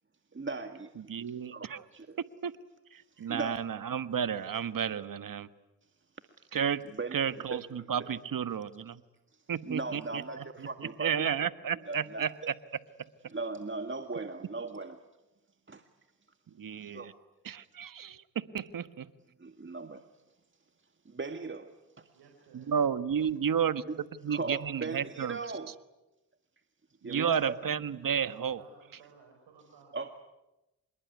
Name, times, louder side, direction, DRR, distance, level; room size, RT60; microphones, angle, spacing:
voice 1, 0.3-1.7 1.9-2.2 3.2-3.6 7.0-7.2 7.5-7.6 8.0-8.1 9.3-11.3 11.9-12.5 13.3-15.0 15.7-15.8 16.8-17.1 19.4-20.0 21.1-22.1 23.9-24.0 24.3-25.8 27.0-27.5 29.9-30.1, right 3 dB, 30° right, 7 dB, 1.8 m, -38 dB
voice 2, 1.0-1.8 2.4-2.5 2.9-5.5 6.5-6.8 7.1-9.0 9.5-12.5 16.6-17.1 17.4-19.1 22.5-23.8 24.2-25.4 27.0-28.6, right 7 dB, 55° right, 13 dB, 1.5 m, -32 dB
voice 3, 22.1-22.7 28.6-30.0, right 5 dB, 70° right, 2 dB, 5.2 m, -57 dB
26.0 x 21.5 x 9.5 m, 0.99 s
supercardioid pair, 55°, 41 cm